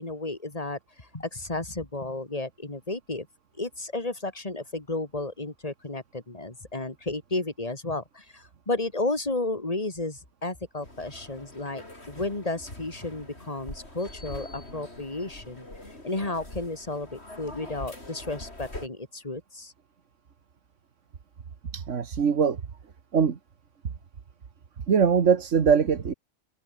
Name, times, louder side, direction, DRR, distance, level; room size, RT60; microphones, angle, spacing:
voice 1, 0.0-3.3 3.6-19.7, left 2 dB, 30° left, 3.1 m, -33 dB
sound 1, 10.8-18.9, left 1 dB, 55° left, 6.6 m, -43 dB
voice 2, 21.7-22.6 23.1-23.4 24.9-26.1, right 6 dB, 70° right, 1.7 m, -22 dB
omnidirectional pair, 1.3 m